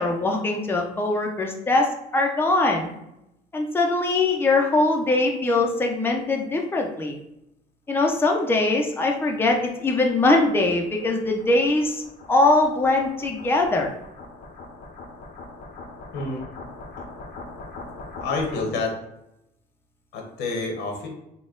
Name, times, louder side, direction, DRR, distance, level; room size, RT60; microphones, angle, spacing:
voice 1, 0.0-2.9 3.5-7.2 7.9-12.0 12.3-13.9, left 2 dB, 15° left, 1 dB, 0.6 m, -22 dB
sound 1, 9.0-19.0, left 3 dB, 65° left, 0.8 m, -42 dB
voice 2, 16.1-16.5 18.2-18.9 20.1-21.1, left 3 dB, 85° left, 2 dB, 1.1 m, -28 dB
4.2 x 2.3 x 3.7 m, 0.84 s
cardioid pair, 110°, 17 cm